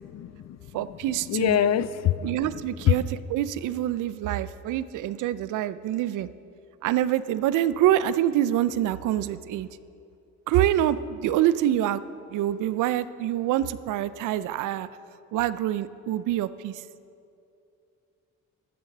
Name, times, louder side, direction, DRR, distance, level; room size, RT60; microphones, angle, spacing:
voice 1, 0.0-0.9 1.3-2.6 2.8-3.0, left 11 dB, 60° left, 16 dB, 0.5 m, -25 dB
voice 2, 0.7-1.6 2.2-3.0 3.3-6.3 6.8-9.7 10.5-12.0 12.3-14.9 15.3-16.8, right 12 dB, 85° right, 16 dB, 0.5 m, -25 dB
14.0 x 7.2 x 6.6 m, 2.6 s
cardioid pair, 90°, 30 cm